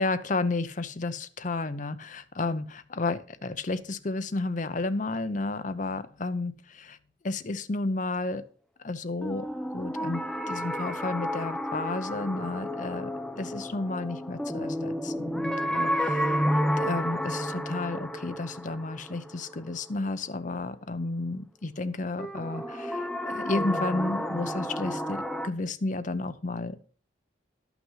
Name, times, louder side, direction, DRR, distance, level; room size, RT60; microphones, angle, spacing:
voice 1, 0.0-7.0 7.2-8.4 8.8-9.5 9.7-16.4 16.8-26.8, left 2 dB, 40° left, 12 dB, 0.7 m, -32 dB
sound 1, 9.2-20.1 22.2-25.5, equal, 5° left, 0.6 m, -31 dB
11.0 x 6.0 x 5.5 m, 0.42 s
head